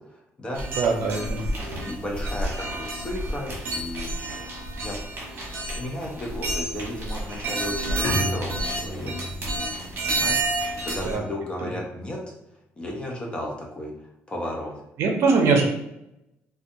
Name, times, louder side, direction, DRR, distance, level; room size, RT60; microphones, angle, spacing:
voice 1, 0.1-0.6 1.8-4.2 4.8-5.0 5.7-9.3 10.0-12.2 12.8-13.9 14.3-14.7, left 1 dB, 20° left, -1 dB, 0.6 m, -34 dB
sound 1, 0.5-11.1, right 1 dB, 45° right, 1.1 m, -30 dB
voice 2, 0.8-1.5 11.0-11.2 11.6-11.7 15.0-15.6, right 4 dB, 70° right, 2 dB, 0.6 m, -22 dB
Bowed string instrument, 8.0-11.6, equal, 70° left, 0.8 m, -34 dB
2.6 x 2.3 x 2.6 m, 0.85 s
cardioid pair, 125°, 5 cm